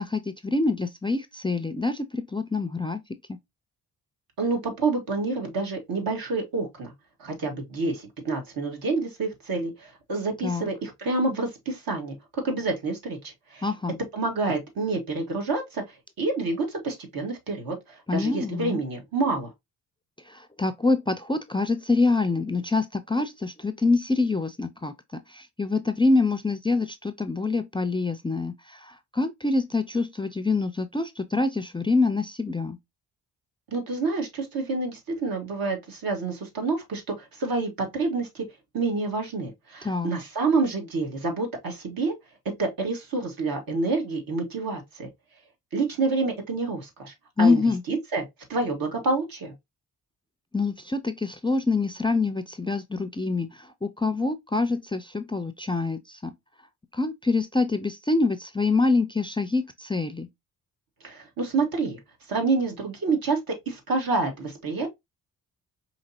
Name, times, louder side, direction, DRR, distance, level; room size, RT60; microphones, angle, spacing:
voice 1, 0.0-3.0 3.3-3.4 10.4-10.7 13.6-14.0 18.1-18.8 20.6-28.5 28.8-32.8 39.8-40.1 47.4-47.8 50.5-53.5 53.8-56.3 56.9-60.3, left 3 dB, 15° left, 0.4 m, -25 dB
voice 2, 4.4-6.9 7.2-13.7 14.1-19.5 33.7-38.5 38.7-42.1 42.6-45.1 45.7-47.6 47.9-48.2 48.5-49.5 61.0-62.0 62.3-64.9, right 3 dB, 65° right, 1.7 m, -28 dB
5.0 x 2.9 x 2.7 m
cardioid pair, 85°, 37 cm